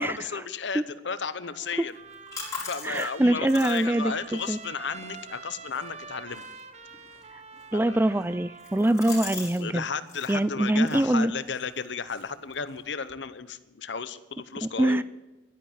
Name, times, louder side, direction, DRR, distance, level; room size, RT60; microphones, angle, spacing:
voice 1, 0.0-1.9 2.6-6.4 7.7-8.0 9.6-15.0, left 5 dB, 70° left, 14 dB, 0.8 m, -34 dB
Trumpet, 1.4-9.0, right 4 dB, 35° right, 0.9 m, -45 dB
sound 1, 1.9-9.6 9.9-10.4 10.8-13.1, left 4 dB, 20° left, 4.8 m, -44 dB
voice 2, 2.8-4.6 7.7-9.9 10.3-11.3 14.6-15.0, right 1 dB, 10° right, 15 dB, 0.4 m, -24 dB
12.0 x 10.5 x 8.7 m, 1.1 s
head